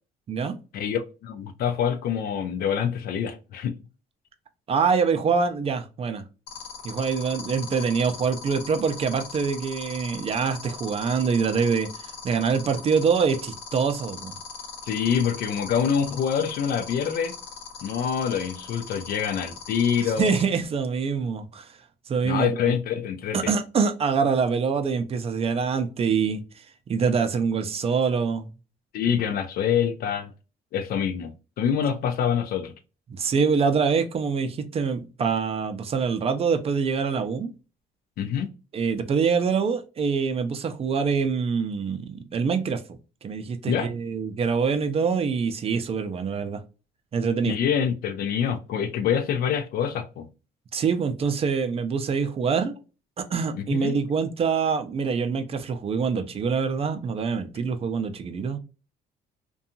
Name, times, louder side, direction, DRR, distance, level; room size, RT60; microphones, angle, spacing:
voice 1, 0.7-3.8 14.9-17.4 17.8-20.4 22.2-23.5 28.9-30.3 30.7-32.7 38.2-38.5 43.6-43.9 47.4-50.3 53.5-54.0, left 8 dB, 60° left, 0.5 m, -26 dB
voice 2, 4.7-6.2 6.8-11.9 12.2-14.4 20.2-21.7 22.1-22.8 23.3-26.4 26.9-28.5 33.1-37.5 38.7-42.8 43.2-46.6 47.1-47.5 50.7-52.8 53.2-58.6, right 5 dB, 35° right, 0.4 m, -25 dB
sound 1, 6.5-20.4, left 7 dB, 85° left, 1.0 m, -39 dB
2.7 x 2.3 x 2.5 m
cardioid pair, 110°, 17 cm